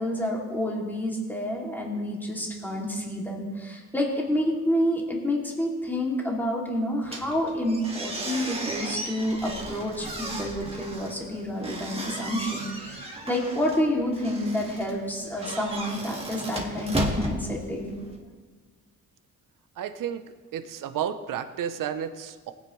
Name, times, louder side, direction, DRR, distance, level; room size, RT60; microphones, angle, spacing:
voice 1, 0.0-18.0, equal, 5° left, -2 dB, 2.6 m, -29 dB
sound 1, 7.0-18.2, right 1 dB, 20° right, 2.0 m, -35 dB
voice 2, 19.8-20.2 20.5-22.5, right 9 dB, 80° right, 10 dB, 0.8 m, -32 dB
19.5 x 9.7 x 3.2 m, 1.5 s
cardioid pair, 105°, 32 cm